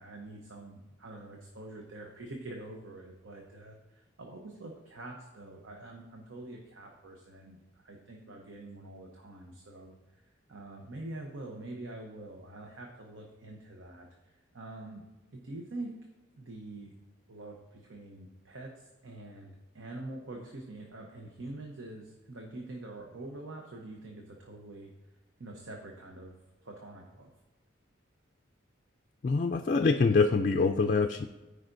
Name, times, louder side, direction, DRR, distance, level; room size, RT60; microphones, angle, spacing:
voice 1, 0.0-15.1 15.3-16.0 16.4-16.9 17.3-24.9 25.4-27.3, right 2 dB, 80° right, 1 dB, 0.9 m, -45 dB
voice 2, 29.2-31.3, left 4 dB, 40° left, 4 dB, 0.3 m, -25 dB
14.0 x 5.0 x 2.6 m, 1.1 s
head